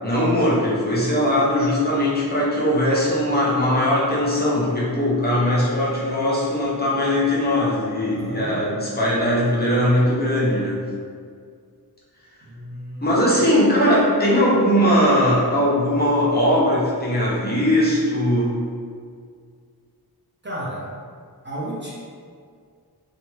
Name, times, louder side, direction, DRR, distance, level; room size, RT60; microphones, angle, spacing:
voice 1, 0.0-10.8 13.0-18.6, equal, 25° left, -7 dB, 0.7 m, -20 dB
voice 2, 8.1-8.6 12.4-13.2 20.4-21.0 21.4-21.9, right 1 dB, 30° right, -6 dB, 0.5 m, -32 dB
2.8 x 2.3 x 3.1 m, 2.1 s
wide cardioid pair, 85°, 39 cm